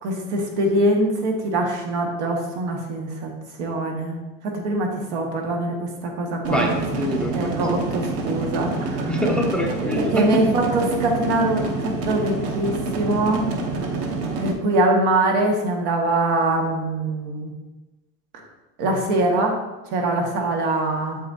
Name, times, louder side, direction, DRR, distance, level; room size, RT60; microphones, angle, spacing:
voice 1, 0.0-3.3 3.6-6.7 7.3-9.1 10.0-13.5 14.4-17.5 18.8-19.6 19.9-21.2, right 2 dB, 85° right, 1 dB, 1.9 m, -23 dB
sound 1, 6.4-14.5, right 3 dB, 45° right, 0.9 m, -27 dB
voice 2, 6.5-7.5 9.1-10.4, equal, 5° left, 0 dB, 0.4 m, -25 dB
8.6 x 7.0 x 2.8 m, 1.1 s
cardioid pair, 170°, 33 cm